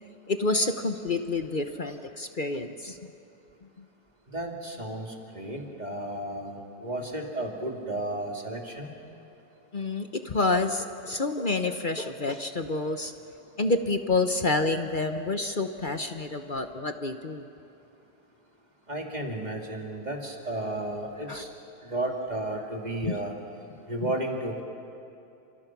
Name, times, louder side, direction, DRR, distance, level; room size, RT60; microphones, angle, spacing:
voice 1, 0.3-3.0 3.8-3.9 9.7-13.1 13.6-17.5 21.3-21.4 23.0-23.1 24.0-24.1, left 3 dB, 35° left, 7 dB, 0.9 m, -28 dB
voice 2, 4.3-5.1 5.3-8.9 18.9-21.5 21.9-23.3 23.9-24.6, right 1 dB, 25° right, 1 dB, 2.8 m, -33 dB
29.5 x 27.5 x 6.1 m, 2.8 s
omnidirectional pair, 1.8 m